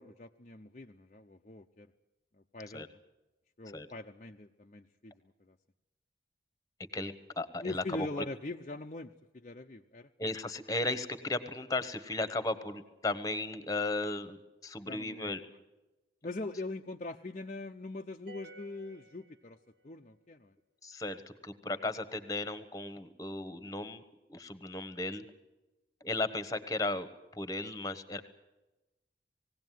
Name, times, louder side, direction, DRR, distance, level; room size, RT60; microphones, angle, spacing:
voice 1, 0.0-1.9 2.5-3.0 3.6-5.1 5.4-5.5 7.6-10.1 14.9-15.4 16.2-19.6 19.8-20.5, left 2 dB, 40° left, 2 dB, 0.7 m, -42 dB
voice 2, 6.9-8.2 10.2-15.5 20.8-24.0 24.3-25.3 26.0-28.2, left 2 dB, 20° left, 12 dB, 1.2 m, -35 dB
sound 1, 18.3-20.0, right 2 dB, 65° right, 1.6 m, -54 dB
20.0 x 17.0 x 9.3 m, 1.0 s
head